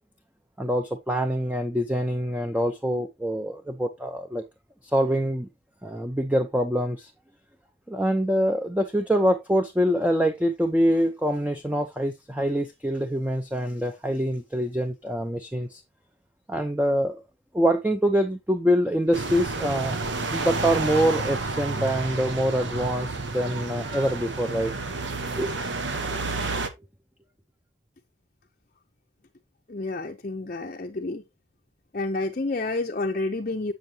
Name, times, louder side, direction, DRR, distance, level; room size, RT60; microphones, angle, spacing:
voice 1, 0.6-4.4 4.8-5.5 5.8-7.1 7.9-15.8 16.5-17.2 17.5-20.0 20.3-24.7 25.4-25.6, equal, 10° right, 0.7 m, -25 dB
sound 1, 19.1-26.7, right 3 dB, 65° right, 1.2 m, -30 dB
voice 2, 29.7-31.2 31.9-33.7, left 2 dB, 40° left, 0.7 m, -29 dB
7.8 x 7.3 x 2.8 m
head